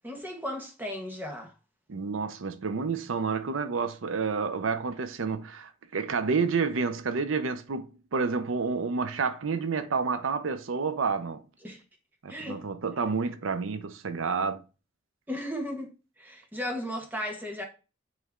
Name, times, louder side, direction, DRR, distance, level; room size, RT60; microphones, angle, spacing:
voice 1, 0.0-1.5 11.6-11.8 12.3-12.6 15.3-17.6, left 1 dB, 10° right, 1.4 m, -35 dB
voice 2, 1.9-11.4 12.2-14.6, right 5 dB, 85° right, 0.6 m, -29 dB
8.3 x 3.2 x 3.6 m
head